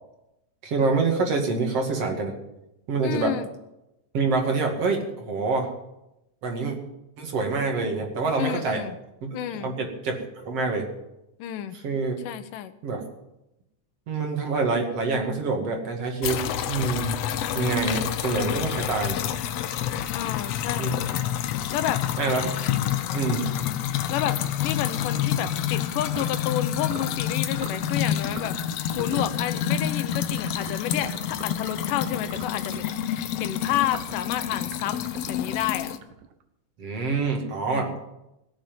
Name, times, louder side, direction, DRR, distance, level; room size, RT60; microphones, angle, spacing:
voice 1, 0.6-2.4 2.9-3.4 4.1-5.7 6.4-6.8 7.2-8.8 9.2-10.9 11.8-12.2 12.8-13.0 14.1-17.1 17.5-19.2 20.8-20.9 22.2-22.5 23.1-23.5 36.8-37.9, right 4 dB, 50° right, 2 dB, 3.0 m, -26 dB
voice 2, 3.0-3.5 8.4-9.0 9.3-9.7 11.4-11.8 12.2-12.7 20.1-21.0 21.7-22.0 24.1-28.6 29.0-35.0 35.3-35.9 37.7-38.0, left 12 dB, 90° left, 12 dB, 2.5 m, -30 dB
sound 1, 16.2-36.0, left 10 dB, 70° left, 1.6 m, -28 dB
sound 2, 26.1-26.4 26.9-27.2 27.5-27.8 28.3-28.7 28.9-29.4 30.1-32.9 33.6-36.4, right 8 dB, 75° right, 2.3 m, -42 dB
18.0 x 7.2 x 9.1 m, 0.91 s
omnidirectional pair, 3.7 m